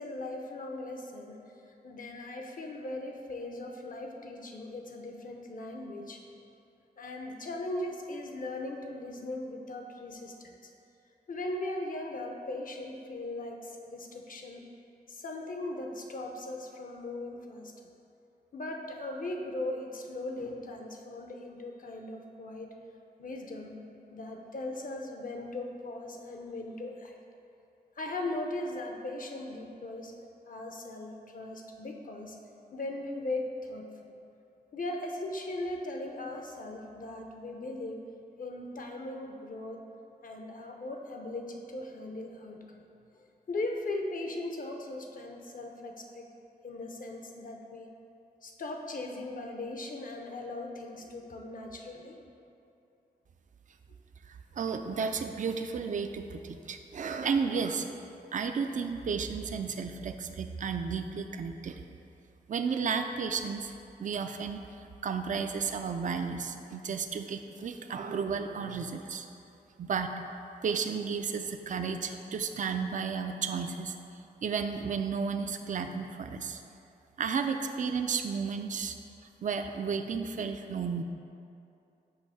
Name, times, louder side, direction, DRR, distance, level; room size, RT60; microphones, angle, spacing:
voice 1, 0.0-1.4 1.7-6.2 7.0-10.7 11.3-14.7 15.1-17.7 18.5-22.7 23.2-23.8 24.1-27.2 28.0-30.1 30.5-32.4 32.7-33.9 34.7-38.0 38.4-39.8 40.2-42.8 43.5-46.3 46.6-47.9 48.4-52.2 55.0-55.1, left 2 dB, 55° left, 2 dB, 0.6 m, -38 dB
voice 2, 54.3-57.9 58.3-61.8 62.5-63.7 64.0-64.6 65.0-69.3 69.8-70.1 70.6-74.0 74.4-76.6 77.2-78.9 79.4-81.0, right 5 dB, 50° right, 6 dB, 0.4 m, -33 dB
6.4 x 2.7 x 5.6 m, 2.7 s
cardioid pair, 70°, 17 cm